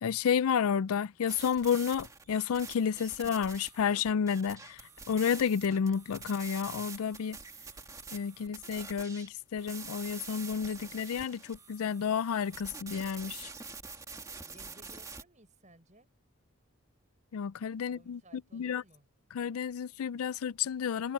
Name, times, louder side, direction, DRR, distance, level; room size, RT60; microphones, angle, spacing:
voice 1, 0.0-7.4 8.1-13.5 17.3-18.8 19.3-21.1, left 7 dB, 80° left, 0.4 m, -31 dB
sound 1, 1.3-9.3 9.6-15.2, right 4 dB, 15° right, 2.0 m, -46 dB
voice 2, 14.4-16.1 17.8-19.1, right 1 dB, 35° right, 7.0 m, -59 dB
head